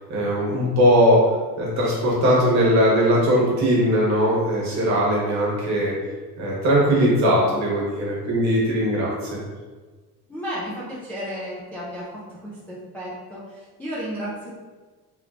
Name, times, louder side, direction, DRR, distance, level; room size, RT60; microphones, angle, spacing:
voice 1, 0.1-1.2 1.6-5.9 6.4-9.4, equal, 45° right, -4 dB, 1.1 m, -20 dB
voice 2, 10.3-14.6, equal, 5° left, -8 dB, 0.3 m, -33 dB
3.2 x 3.1 x 2.4 m, 1.3 s
cardioid pair, 165°, 37 cm